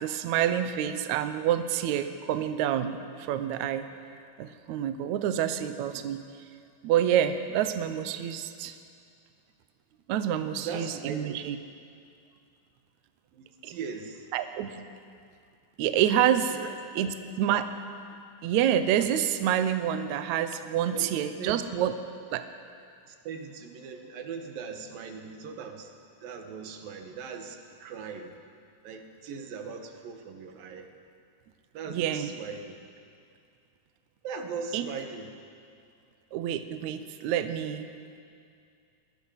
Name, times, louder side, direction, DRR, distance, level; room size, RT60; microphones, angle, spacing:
voice 1, 0.0-3.8 4.4-6.2 6.8-8.8 10.1-11.6 13.6-13.7 14.3-14.7 15.8-16.6 17.0-17.7 18.4-21.9 22.3-22.4 31.9-32.3 34.7-34.9 36.3-37.9, right 10 dB, 70° right, 9 dB, 2.0 m, -27 dB
voice 2, 10.5-11.4 13.3-14.3 16.5-17.1 20.9-21.1 21.4-21.6 23.0-25.9 26.2-28.3 28.8-30.9 31.7-32.8 34.2-35.4, right 5 dB, 90° right, 5 dB, 3.3 m, -39 dB
23.0 x 20.5 x 5.8 m, 2.4 s
omnidirectional pair, 3.9 m